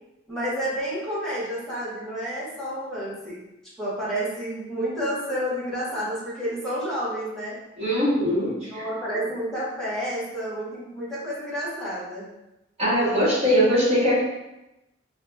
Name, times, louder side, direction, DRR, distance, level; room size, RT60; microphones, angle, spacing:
voice 1, 0.3-3.4 3.8-7.6 8.5-12.3, equal, 5° left, -9 dB, 1.2 m, -30 dB
voice 2, 7.8-8.8 12.8-14.2, equal, 35° right, -9 dB, 1.4 m, -21 dB
5.7 x 2.2 x 2.2 m, 0.95 s
head